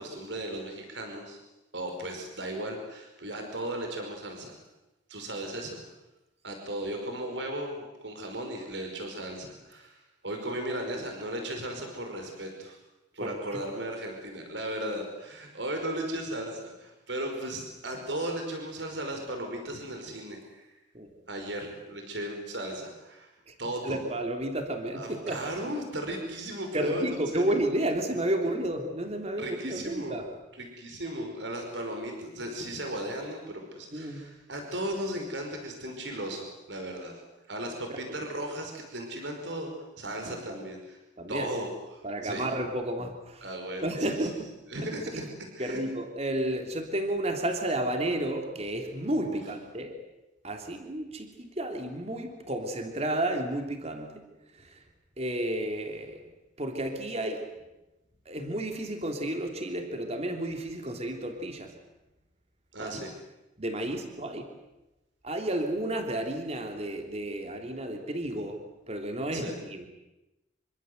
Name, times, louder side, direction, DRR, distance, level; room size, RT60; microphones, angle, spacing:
voice 1, 0.0-1.4 1.7-4.6 5.1-5.8 6.4-12.8 13.1-20.7 21.3-23.3 23.6-24.0 24.9-27.6 28.4-28.5 29.4-30.2 30.5-37.2 37.5-41.0 41.3-42.5 43.4-44.3 44.7-45.8 49.2-49.4 62.7-63.1 63.9-64.0 69.3-69.6, right 1 dB, 70° right, 4 dB, 5.3 m, -36 dB
voice 2, 23.8-25.5 26.7-30.3 33.9-34.2 40.5-40.6 41.2-41.5 42.0-43.4 43.8-44.5 45.1-45.2 45.6-50.0 50.4-54.2 55.2-56.2 56.6-57.5 58.3-61.7 62.8-62.9 63.6-64.5 65.2-68.6 68.9-69.9, right 1 dB, 35° right, 4 dB, 3.1 m, -31 dB
26.5 x 24.5 x 8.0 m, 0.98 s
head